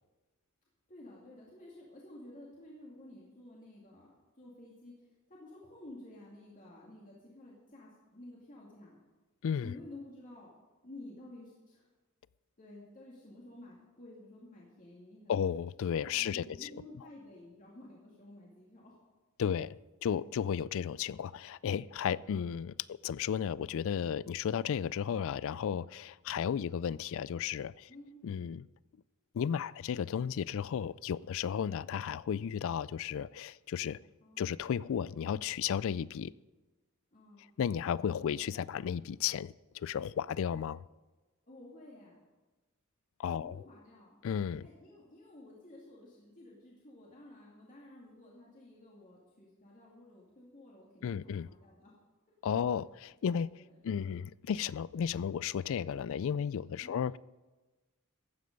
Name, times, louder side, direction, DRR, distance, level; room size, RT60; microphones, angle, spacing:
voice 1, 0.9-4.1 4.4-4.9 5.3-9.0 9.6-10.5 10.8-11.9 12.6-15.3 16.0-19.0 27.9-28.1 34.2-34.5 37.1-37.4 41.5-42.2 43.4-44.2 44.6-51.9 52.6-52.8 53.6-53.7 56.8-57.0, left 1 dB, 40° left, 2.5 m, -52 dB
voice 2, 9.4-9.7 15.3-16.7 19.4-22.7 23.0-27.9 28.2-28.7 29.3-34.0 34.4-36.3 37.6-40.8 43.2-43.6 44.2-44.7 51.0-51.5 52.4-53.6 53.8-57.2, left 8 dB, 65° left, 0.3 m, -34 dB
14.5 x 9.5 x 5.3 m
head